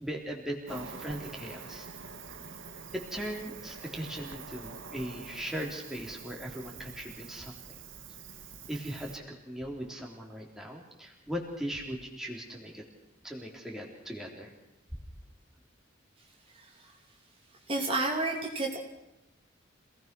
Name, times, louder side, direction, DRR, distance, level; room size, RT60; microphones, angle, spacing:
voice 1, 0.0-1.9 2.9-7.8 8.7-12.8 13.2-14.5, equal, ahead, -1 dB, 3.7 m, -39 dB
Cricket, 0.7-9.2, right 5 dB, 75° right, 2.1 m, -46 dB
voice 2, 17.7-18.8, right 2 dB, 30° right, 0 dB, 3.0 m, -30 dB
27.0 x 18.5 x 6.2 m, 0.92 s
head